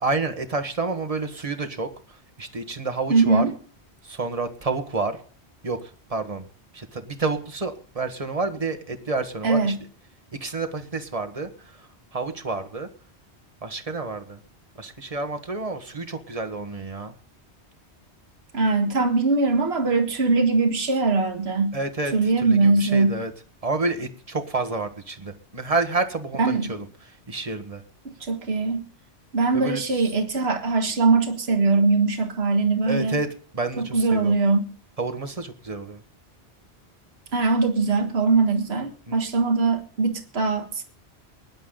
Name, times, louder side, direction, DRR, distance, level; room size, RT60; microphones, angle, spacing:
voice 1, 0.0-3.5 4.0-5.2 5.6-6.5 6.7-9.8 10.3-12.9 13.6-14.4 14.8-17.1 21.7-23.3 23.6-26.9 27.3-27.8 29.5-30.1 32.8-34.4 35.0-36.0 39.1-39.2, right 3 dB, 30° right, 7 dB, 1.6 m, -29 dB
voice 2, 3.1-3.5 9.4-9.8 18.5-21.8 22.1-23.2 26.4-26.7 28.2-28.8 29.3-33.2 33.8-34.7 37.3-40.8, right 3 dB, 65° right, 5 dB, 1.9 m, -21 dB
23.0 x 11.0 x 3.9 m, 0.42 s
omnidirectional pair, 1.1 m